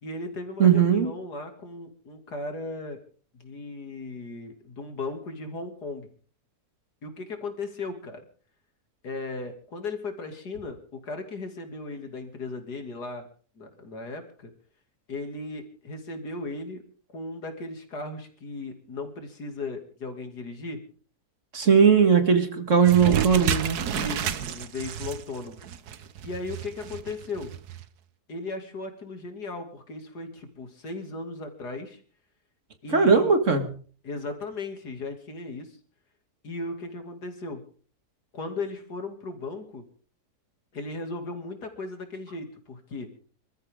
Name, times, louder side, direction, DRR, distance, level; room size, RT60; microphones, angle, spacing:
voice 1, 0.0-3.0 3.3-6.1 7.0-8.2 9.0-13.3 13.6-14.5 15.1-16.8 17.1-20.8 23.9-25.6 26.2-27.5 28.3-32.0 32.8-33.3 34.0-35.8 36.4-37.7 38.3-39.9 40.7-43.1, left 3 dB, 80° left, 6 dB, 3.2 m, -36 dB
voice 2, 0.6-1.1 21.5-23.8 32.9-33.7, right 6 dB, 50° right, 7 dB, 2.4 m, -19 dB
sound 1, 22.8-27.8, right 9 dB, 75° right, 1.5 m, -31 dB
26.5 x 14.0 x 3.7 m, 0.42 s
omnidirectional pair, 1.7 m